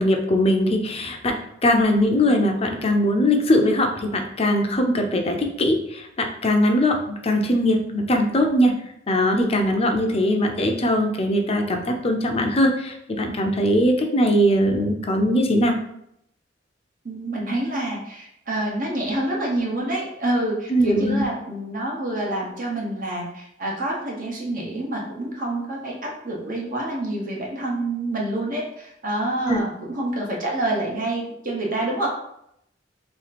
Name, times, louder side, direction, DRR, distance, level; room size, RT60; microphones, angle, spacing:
voice 1, 0.0-8.7 9.1-15.8 20.7-21.2 29.5-29.6, left 1 dB, 35° left, 4 dB, 0.5 m, -21 dB
voice 2, 17.0-32.1, right 1 dB, 45° right, -2 dB, 1.0 m, -27 dB
3.2 x 2.9 x 4.1 m, 0.76 s
head